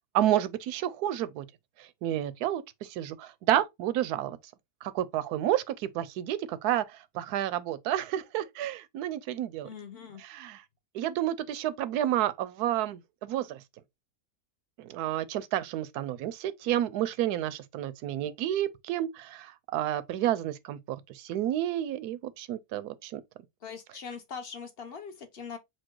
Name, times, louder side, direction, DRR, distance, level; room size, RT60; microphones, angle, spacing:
voice 1, 0.1-1.5 1.8-4.4 4.8-9.7 10.2-10.6 10.9-13.6 14.8-23.2, right 12 dB, 80° right, 1.1 m, -30 dB
voice 2, 9.6-10.2 23.6-25.6, left 6 dB, 50° left, 0.8 m, -41 dB
4.5 x 2.2 x 4.4 m
omnidirectional pair, 1.7 m